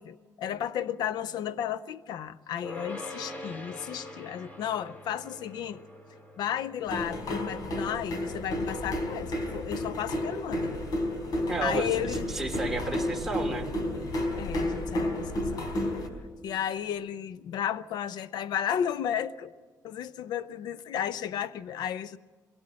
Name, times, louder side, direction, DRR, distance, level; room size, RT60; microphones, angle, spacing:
voice 1, 0.0-5.8 6.4-10.7 11.6-12.3 14.4-15.7 16.4-19.5 19.8-22.2, left 9 dB, 80° left, 15 dB, 0.7 m, -33 dB
sound 1, 2.6-13.9, left 1 dB, 25° left, 2.6 m, -47 dB
sound 2, 6.9-16.1, left 1 dB, 65° left, 4.1 m, -31 dB
voice 2, 11.5-13.7, right 2 dB, 5° right, 1 dB, 2.8 m, -32 dB
22.5 x 17.5 x 7.6 m, 1.4 s
cardioid pair, 115°, 7 cm